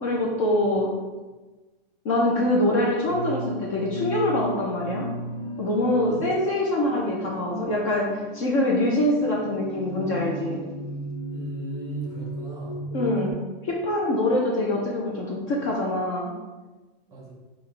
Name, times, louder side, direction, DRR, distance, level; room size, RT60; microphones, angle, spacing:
voice 1, 0.0-0.9 2.0-5.0 5.6-10.6 12.9-13.4 13.6-16.3, left 1 dB, 35° left, -2 dB, 0.6 m, -24 dB
sound 1, 3.1-13.3, right 1 dB, 70° left, 1.3 m, -36 dB
voice 2, 11.3-12.8 17.1-17.3, right 1 dB, 10° right, -4 dB, 0.9 m, -37 dB
5.5 x 2.4 x 3.2 m, 1.2 s
supercardioid pair, 165°, 29 cm